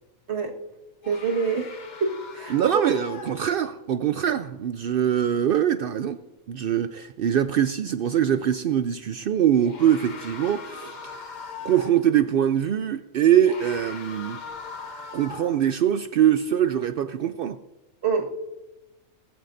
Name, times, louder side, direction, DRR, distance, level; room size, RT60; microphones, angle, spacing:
sound 1, 1.0-3.8 8.0-8.2 9.5-12.1 13.2-15.7, left 5 dB, 35° left, 1.0 m, -40 dB
voice 1, 1.1-1.7 2.0-2.8 18.0-18.3, right 5 dB, 50° right, 1.8 m, -26 dB
voice 2, 2.5-6.2 6.5-11.2 11.6-14.4 15.1-17.6, right 10 dB, 75° right, 0.5 m, -23 dB
18.5 x 15.0 x 2.6 m
omnidirectional pair, 1.5 m